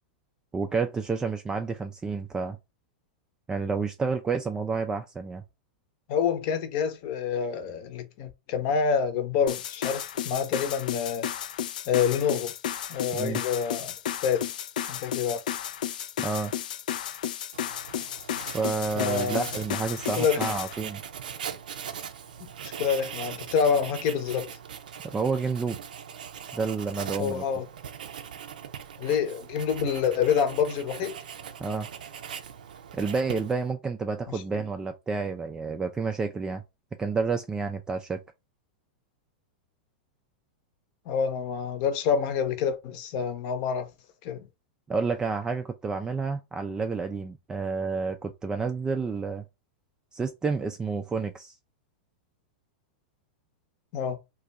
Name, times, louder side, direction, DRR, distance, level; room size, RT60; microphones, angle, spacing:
voice 1, 0.5-2.6 3.5-5.4 13.1-13.4 16.2-16.5 18.5-21.0 25.1-25.8 26.5-27.4 31.6-31.9 32.9-36.6 37.0-38.2 44.9-49.4 50.1-51.6, right 4 dB, 15° right, 0.3 m, -29 dB
voice 2, 6.1-11.3 11.9-12.5 12.9-13.9 14.2-14.4 14.9-15.4 19.0-19.5 20.2-20.4 22.8-24.5 27.2-27.6 29.0-31.2 34.3-34.4 41.1-43.9 44.2-44.5 53.9-54.2, left 7 dB, 50° left, 0.8 m, -27 dB
sound 1, 9.5-20.8, left 10 dB, 70° left, 0.3 m, -33 dB
Writing, 17.5-33.7, right 8 dB, 75° right, 0.5 m, -40 dB
2.5 x 2.3 x 3.9 m
hypercardioid pair, 105°, 5 cm